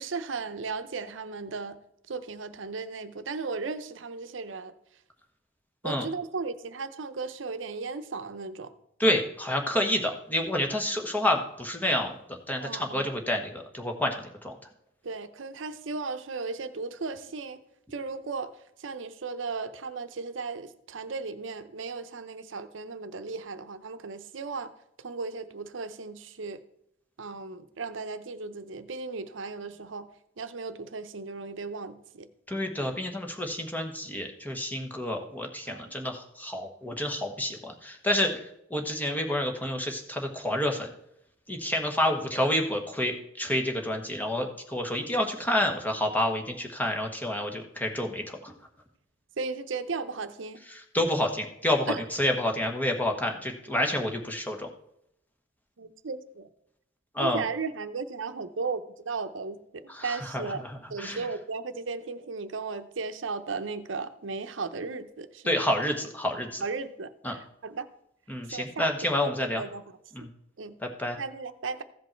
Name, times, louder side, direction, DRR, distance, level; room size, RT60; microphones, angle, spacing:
voice 1, 0.0-1.8 2.1-4.7 5.8-8.7 12.6-13.1 15.0-17.6 17.9-18.5 18.8-24.7 25.0-26.6 27.2-30.1 30.4-32.3 35.7-35.9 49.4-50.6 51.9-52.1 55.8-56.5 57.2-60.6 60.9-65.6 66.6-67.9 68.5-68.9 69.2-69.8 70.2-70.3 70.6-70.7 71.2-71.8, right 4 dB, 70° right, 10 dB, 0.7 m, -36 dB
voice 2, 9.0-14.2 14.4-14.5 32.5-38.4 38.7-40.9 41.5-48.5 50.7-54.7 57.1-57.4 59.9-61.3 65.4-66.6 67.2-67.4 68.3-69.6 70.1-70.3 70.8-71.2, left 1 dB, 10° left, 2 dB, 1.2 m, -29 dB
15.0 x 5.3 x 4.4 m, 0.78 s
head